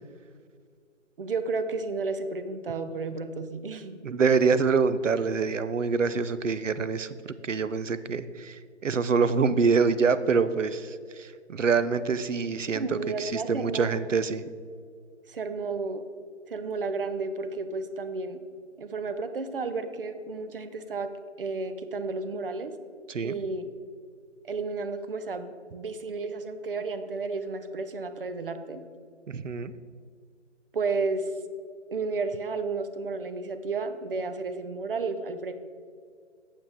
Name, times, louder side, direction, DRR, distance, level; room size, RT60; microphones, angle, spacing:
voice 1, 1.2-4.0 12.7-14.0 15.3-16.0 16.5-18.4 18.8-21.1 21.4-22.7 23.2-23.7 24.4-28.8 30.7-31.3 31.9-35.5, right 3 dB, 50° right, 10 dB, 0.7 m, -32 dB
voice 2, 4.0-14.4 23.1-23.4 29.3-29.7, right 5 dB, 90° right, 14 dB, 0.6 m, -26 dB
8.6 x 7.2 x 3.6 m, 2.1 s
figure-of-eight pair, 150°, 36 cm